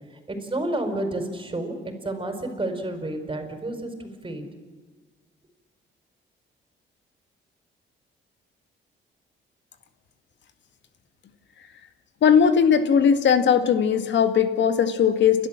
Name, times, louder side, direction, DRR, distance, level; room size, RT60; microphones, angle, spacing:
voice 1, 0.3-1.8 2.0-4.4, right 1 dB, 25° right, 6 dB, 4.8 m, -30 dB
voice 2, 12.2-15.5, left 7 dB, 65° left, 9 dB, 2.0 m, -19 dB
30.0 x 12.5 x 7.6 m, 1.5 s
cardioid pair, 90°, 20 cm